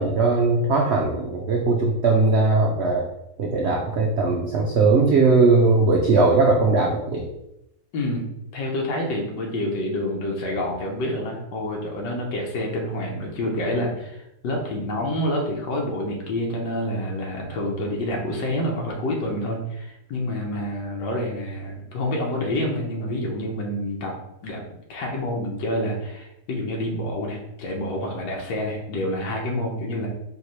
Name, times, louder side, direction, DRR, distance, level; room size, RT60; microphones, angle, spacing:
voice 1, 0.0-3.0 3.4-7.2, right 3 dB, 85° right, -1 dB, 0.5 m, -19 dB
voice 2, 7.9-8.2 8.5-24.1 24.4-24.6 24.9-30.1, left 1 dB, 90° left, -1 dB, 1.5 m, -28 dB
5.0 x 2.8 x 3.1 m, 0.83 s
omnidirectional pair, 1.9 m